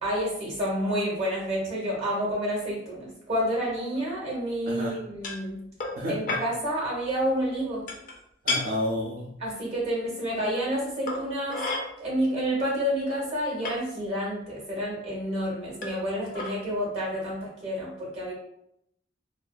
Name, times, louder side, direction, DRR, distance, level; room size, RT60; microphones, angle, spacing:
voice 1, 0.0-5.6 6.1-7.8 9.4-11.6 12.0-18.3, equal, 35° right, -4 dB, 0.9 m, -29 dB
sound 1, 5.2-5.4 5.8-6.0 6.3-6.5 7.9-8.1 8.5-8.6 9.9-10.0 11.1-11.8 12.7-12.8 13.1-13.8 14.6-14.7 15.8-16.1 16.3-16.5, left 2 dB, 45° left, 0.4 m, -31 dB
voice 2, 8.5-9.3, left 1 dB, 50° right, -4 dB, 0.4 m, -30 dB
2.5 x 2.2 x 2.2 m, 0.77 s
head